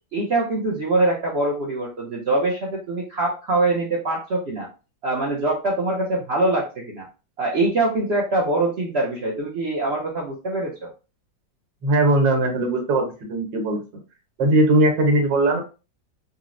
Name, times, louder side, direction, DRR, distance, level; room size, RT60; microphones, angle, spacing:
voice 1, 0.1-4.7 5.0-7.1 7.4-10.9, right 2 dB, 75° right, -2 dB, 0.6 m, -23 dB
voice 2, 11.8-13.8 14.4-15.6, right 2 dB, 90° right, 2 dB, 1.6 m, -19 dB
3.9 x 2.0 x 2.5 m, 0.32 s
omnidirectional pair, 1.9 m